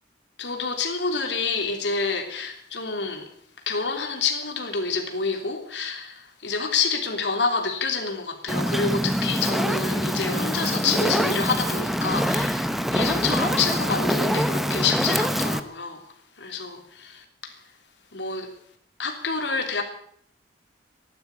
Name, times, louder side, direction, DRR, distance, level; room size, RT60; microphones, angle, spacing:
voice 1, 0.4-3.3 3.7-16.0 16.4-17.5 18.1-18.5 19.0-19.8, left 4 dB, 80° left, 3.2 m, -28 dB
Fire, 8.5-15.6, equal, ahead, 0.8 m, -25 dB
15.0 x 11.5 x 8.4 m
head